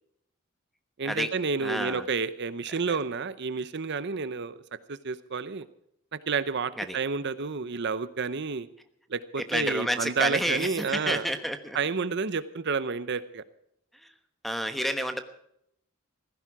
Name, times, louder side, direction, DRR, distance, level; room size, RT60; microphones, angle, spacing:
voice 1, 1.0-4.6 4.9-5.7 6.3-8.7 9.1-11.3 11.7-13.4, right 5 dB, 55° right, 14 dB, 0.7 m, -30 dB
voice 2, 1.6-2.1 2.7-3.0 6.8-7.0 9.4-11.8 14.4-15.2, equal, ahead, 8 dB, 1.2 m, -30 dB
16.0 x 15.5 x 4.8 m, 0.75 s
head